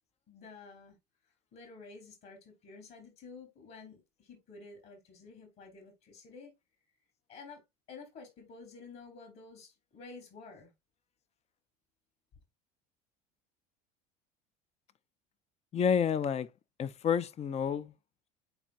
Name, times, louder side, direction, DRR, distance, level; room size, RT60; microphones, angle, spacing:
voice 1, 0.3-1.0 1.5-6.5 7.3-10.7, left 4 dB, 55° left, 4.5 m, -51 dB
voice 2, 15.7-16.5 16.8-17.9, left 7 dB, 30° left, 0.6 m, -29 dB
8.8 x 4.5 x 2.5 m
hypercardioid pair, 80°, 21 cm